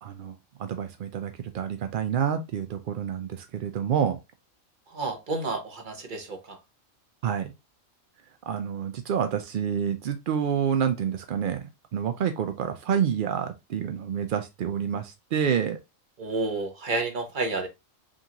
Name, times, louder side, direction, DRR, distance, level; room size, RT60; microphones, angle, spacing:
voice 1, 0.0-4.2 7.2-7.5 8.5-11.6 11.9-15.8, right 8 dB, 75° right, 0.4 m, -28 dB
voice 2, 4.9-6.6 16.2-17.7, right 3 dB, 40° right, 0.9 m, -30 dB
5.1 x 2.7 x 2.8 m
omnidirectional pair, 1.4 m